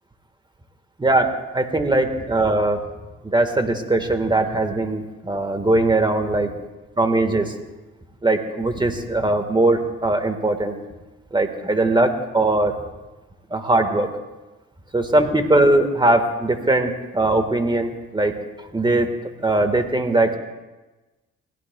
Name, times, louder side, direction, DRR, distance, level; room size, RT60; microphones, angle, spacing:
voice 1, 1.0-2.8 3.2-6.5 7.0-7.5 8.2-10.8 11.3-12.7 13.5-14.1 14.9-18.3 18.7-19.1 19.4-20.4, right 2 dB, 15° right, 7 dB, 1.5 m, -20 dB
22.5 x 16.5 x 2.3 m, 1.1 s
cardioid pair, 90°, 30 cm